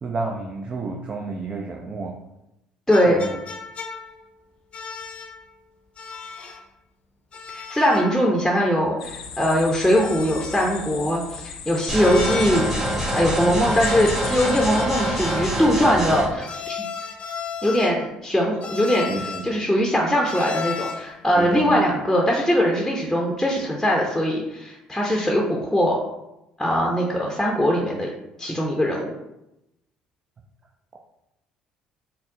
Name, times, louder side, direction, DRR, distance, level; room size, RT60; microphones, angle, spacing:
voice 1, 0.0-2.2 3.1-3.4 19.1-19.6 21.3-21.8, right 3 dB, 35° right, 2 dB, 0.5 m, -30 dB
sound 1, 2.9-4.2 4.7-5.4 6.0-6.7 7.3-8.2 8.5-8.6 9.9-10.9 11.9-12.8 13.5-15.6 16.4-18.1 18.6-19.5 20.2-21.1, left 5 dB, 40° left, 0.6 m, -35 dB
voice 2, 2.9-3.2 7.5-16.8 17.6-26.0 26.6-28.1 28.4-29.1, equal, ahead, -1 dB, 0.7 m, -21 dB
sound 2, 9.0-14.8, left 6 dB, 90° left, 0.3 m, -37 dB
sound 3, 11.9-16.3, right 1 dB, 15° right, 1.2 m, -25 dB
4.2 x 2.0 x 3.7 m, 0.88 s
hypercardioid pair, 60°, 3 cm